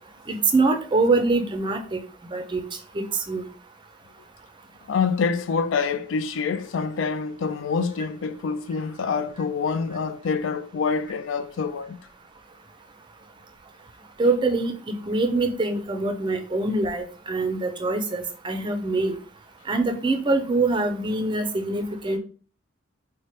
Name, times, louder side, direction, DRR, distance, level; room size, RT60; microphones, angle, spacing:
voice 1, 0.3-2.0 2.3-2.6 2.9-3.4 14.2-14.7 15.1-19.1 19.7-22.2, right 3 dB, 25° right, 0.5 m, -24 dB
voice 2, 4.9-12.0, left 5 dB, 80° left, 0.4 m, -26 dB
4.3 x 2.1 x 3.1 m
head